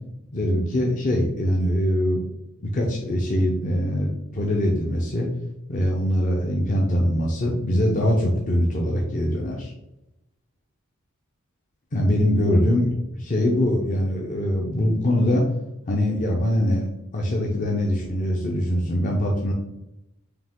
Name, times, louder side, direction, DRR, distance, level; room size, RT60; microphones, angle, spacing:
voice 1, 0.3-2.2 2.6-5.3 5.7-9.7 11.9-15.5 15.9-16.9 17.1-19.5, equal, 35° left, -1 dB, 0.6 m, -22 dB
5.0 x 2.8 x 3.6 m, 0.88 s
head